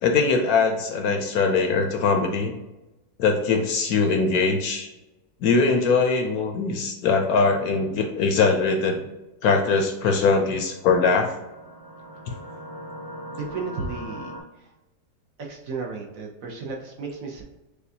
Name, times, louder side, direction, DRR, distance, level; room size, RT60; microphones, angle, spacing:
voice 1, 0.0-2.5 3.2-4.9 5.4-9.0 9.4-11.3, left 4 dB, 70° left, 3 dB, 1.0 m, -21 dB
sound 1, 10.6-14.4, equal, 25° right, 0.5 m, -40 dB
voice 2, 13.3-14.7 15.4-17.4, right 4 dB, 65° right, 0 dB, 1.0 m, -34 dB
6.7 x 2.3 x 2.7 m, 1.0 s
omnidirectional pair, 1.8 m